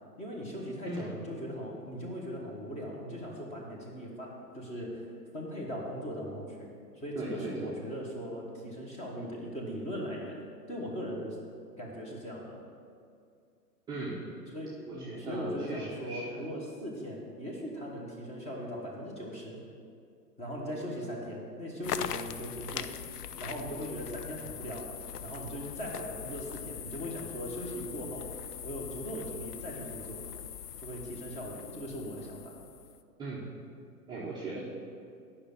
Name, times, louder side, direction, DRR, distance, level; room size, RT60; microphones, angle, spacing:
voice 1, 0.2-5.1 5.3-6.7 6.9-10.4 10.7-11.4 11.8-12.6 14.5-19.6 20.4-22.9 23.4-24.9 25.2-28.3 28.6-30.2 30.8-32.6, equal, 15° left, -2 dB, 1.3 m, -39 dB
voice 2, 7.1-7.7 13.9-14.2 14.9-16.4 33.2-33.4 34.1-34.6, right 2 dB, 10° right, -7 dB, 0.8 m, -38 dB
sound 1, 21.8-33.0, left 9 dB, 70° left, 0.6 m, -41 dB
8.8 x 5.7 x 6.8 m, 2.3 s
figure-of-eight pair, 120°, 49 cm